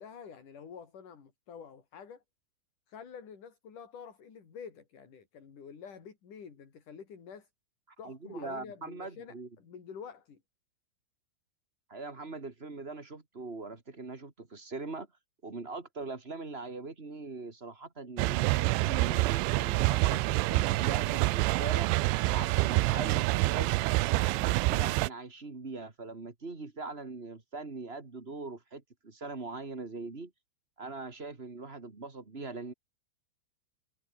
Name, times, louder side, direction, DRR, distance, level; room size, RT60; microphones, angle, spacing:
voice 1, 0.0-2.2 2.9-7.5 8.0-10.4, left 6 dB, 45° left, 4.9 m, -48 dB
voice 2, 8.0-9.5 11.9-15.1 15.4-21.9 22.3-23.7 24.1-30.3 30.8-32.7, right 3 dB, 40° right, 0.8 m, -41 dB
sound 1, 18.2-25.1, right 21 dB, 85° right, 2.9 m, -27 dB
omnidirectional pair, 5.7 m